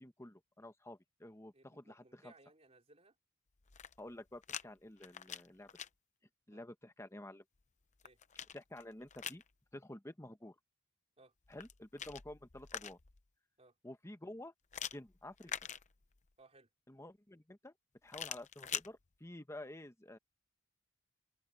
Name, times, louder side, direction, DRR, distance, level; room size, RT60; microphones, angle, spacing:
voice 1, 0.0-2.3 4.0-5.7 6.5-7.4 8.5-9.4 9.7-10.5 11.5-13.0 13.8-14.5 14.9-15.5 16.9-17.7 18.0-20.2, left 1 dB, 15° left, 1.1 m, -50 dB
voice 2, 1.5-3.2 6.5-6.6 8.0-8.2 11.2-11.3 13.6-13.8 15.5-15.6 16.4-16.7, right 2 dB, 30° right, 4.6 m, -64 dB
sound 1, 3.6-4.6 5.0-5.9 7.6-9.5 11.4-13.2 14.7-16.3 18.1-18.9, left 8 dB, 35° left, 0.7 m, -45 dB
open air
head